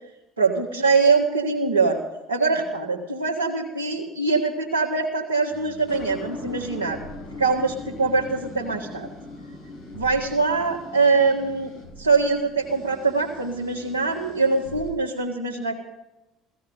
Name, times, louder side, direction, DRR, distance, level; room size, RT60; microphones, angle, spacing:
voice 1, 0.4-2.0 2.3-7.0 7.4-9.1 9.9-11.7 12.0-15.8, right 4 dB, 85° right, -2 dB, 1.6 m, -23 dB
sound 1, 5.5-14.9, left 2 dB, 70° left, 5.5 m, -40 dB
16.0 x 15.5 x 5.7 m, 0.95 s
figure-of-eight pair, 60°, 0 cm